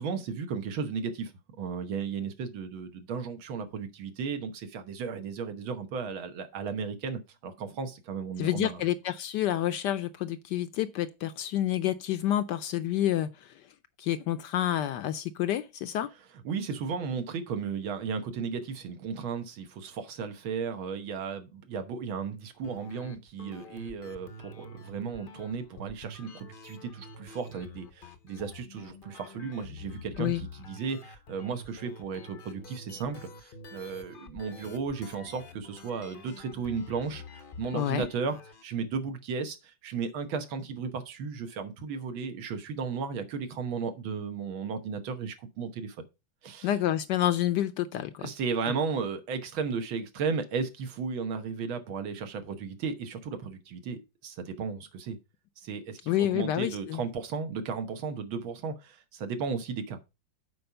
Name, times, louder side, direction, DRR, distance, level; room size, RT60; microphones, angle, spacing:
voice 1, 0.0-1.3 1.6-8.8 16.5-46.0 46.4-46.7 48.2-55.2 55.6-60.0, right 5 dB, 80° right, 2.0 m, -35 dB
voice 2, 8.4-13.6 14.0-16.1 30.2-30.4 37.7-38.1 46.6-48.3 56.1-57.0, left 12 dB, 70° left, 1.1 m, -29 dB
sound 1, 22.6-38.6, left 2 dB, 55° left, 0.6 m, -48 dB
7.8 x 4.9 x 5.6 m
omnidirectional pair, 2.2 m